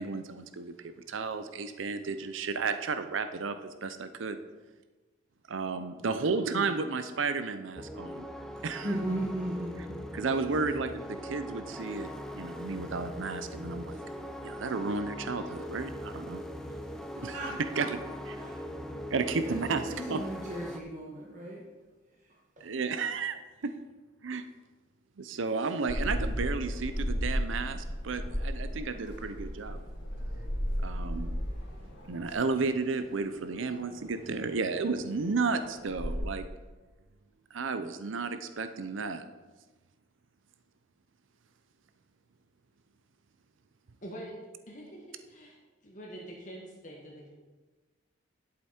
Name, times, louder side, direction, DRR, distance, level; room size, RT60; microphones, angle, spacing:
voice 1, 0.0-4.4 5.5-8.3 8.6-9.0 10.1-12.1 12.3-14.0 14.4-16.4 17.2-18.0 18.3-18.4 19.1-20.2 22.6-23.4 23.6-23.7 24.2-24.4 25.2-29.8 30.8-31.3 32.1-36.5 37.5-39.2, right 4 dB, 80° right, 10 dB, 0.6 m, -33 dB
sound 1, 7.8-20.8, equal, 5° left, 0.5 m, -41 dB
voice 2, 8.8-10.3 10.7-10.9 17.1-17.9 18.3-18.6 19.4-21.6, right 1 dB, 40° right, -3 dB, 1.4 m, -37 dB
sound 2, 25.9-36.2, equal, 85° left, 2.5 m, -35 dB
voice 3, 44.0-44.3 44.7-45.6 45.8-47.3, right 1 dB, 40° left, -3 dB, 1.6 m, -45 dB
11.0 x 7.8 x 4.3 m, 1.3 s
head